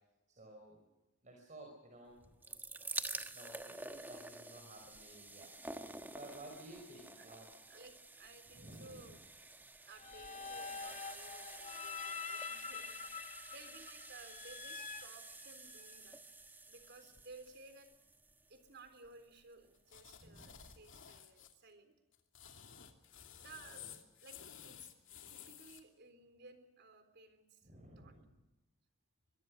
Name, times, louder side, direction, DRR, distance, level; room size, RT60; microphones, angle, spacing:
voice 1, 0.4-0.8 1.2-2.6 3.0-5.7 6.1-7.5 8.5-9.1 20.2-20.7 23.8-23.9 27.6-28.4, right 1 dB, 35° right, 1 dB, 5.3 m, -55 dB
sound 1, 2.2-19.2 20.0-20.1 20.3-20.4, right 2 dB, 10° right, 1.2 m, -49 dB
voice 2, 7.7-9.2 9.8-16.2 16.7-17.9 18.5-21.9 23.4-23.9 24.2-24.9 25.3-27.7 28.0-28.1, right 3 dB, 55° right, 9 dB, 3.7 m, -58 dB
sound 2, 10.0-16.0, left 6 dB, 35° left, 1.2 m, -46 dB
sound 3, 19.9-21.5 22.1-25.8, left 9 dB, 65° left, 2.7 m, -54 dB
24.0 x 22.0 x 6.5 m, 1.0 s
head